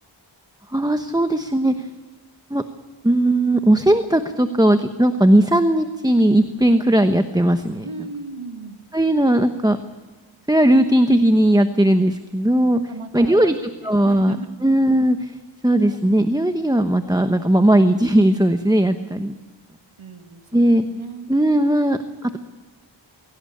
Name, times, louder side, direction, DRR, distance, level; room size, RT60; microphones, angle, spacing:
voice 1, 0.7-1.9 2.5-2.6 3.0-7.9 8.9-9.8 10.5-12.8 13.1-13.5 13.8-14.4 14.6-15.4 15.6-19.3 20.5-20.8 21.3-22.4, right 1 dB, 10° right, 8 dB, 1.0 m, -17 dB
voice 2, 7.8-8.8 12.9-14.5 20.0-21.3, right 3 dB, 90° right, 7 dB, 2.0 m, -36 dB
23.0 x 17.0 x 8.5 m, 1.3 s
wide cardioid pair, 65°, 48 cm